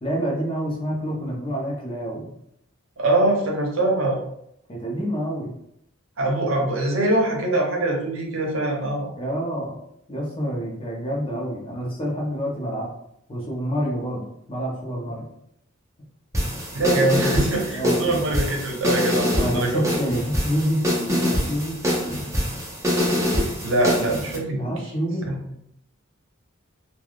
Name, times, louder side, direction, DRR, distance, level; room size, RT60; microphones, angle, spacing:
voice 1, 0.0-2.3 4.7-5.5 9.1-9.8 10.1-12.9 13.3-15.3 17.7-18.0 19.3-20.9 21.3-21.8 24.6-25.3, equal, 25° left, -2 dB, 0.7 m, -27 dB
voice 2, 3.0-4.2 6.2-9.1 16.7-19.9 23.6-24.7 25.3-25.4, right 2 dB, 70° right, 0 dB, 0.7 m, -23 dB
sound 1, 16.3-24.4, left 1 dB, 15° right, 0.7 m, -24 dB
3.3 x 2.3 x 2.3 m, 0.75 s
head